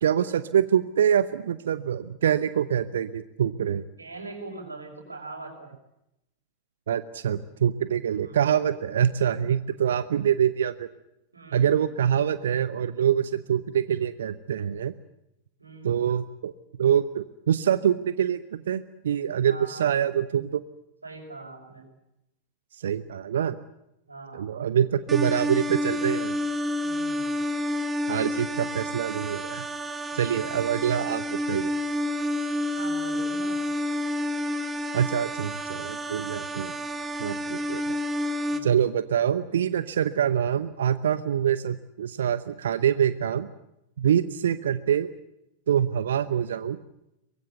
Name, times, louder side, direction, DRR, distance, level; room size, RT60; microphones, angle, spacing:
voice 1, 0.0-3.9 6.9-10.9 11.5-14.9 15.8-16.5 16.8-20.6 22.8-23.6 24.3-26.4 28.1-29.6 30.1-31.7 34.9-36.7 37.2-38.0 38.6-43.5 44.0-45.1 45.7-46.8, right 9 dB, 65° right, 15 dB, 0.8 m, -25 dB
voice 2, 4.0-5.7 8.1-8.4 11.3-11.8 15.6-16.1 19.4-20.0 21.0-21.8 24.1-24.5 26.8-27.3 30.1-30.5 32.7-33.6 36.6-36.8 38.5-38.8, right 3 dB, 80° right, 3 dB, 5.9 m, -42 dB
sound 1, 25.1-38.6, left 1 dB, 15° right, 2.0 m, -29 dB
24.0 x 21.0 x 8.2 m, 0.87 s
figure-of-eight pair, 90°, 0 cm